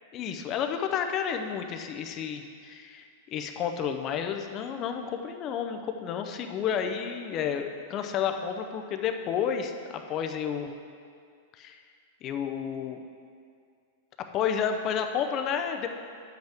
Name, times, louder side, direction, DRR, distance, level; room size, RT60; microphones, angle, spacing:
voice 1, 0.1-7.6 7.9-10.7 11.6-11.8 12.2-13.0 14.3-15.9, left 8 dB, 30° left, 6 dB, 0.5 m, -31 dB
9.0 x 8.0 x 3.5 m, 2.2 s
supercardioid pair, 160°, 0 cm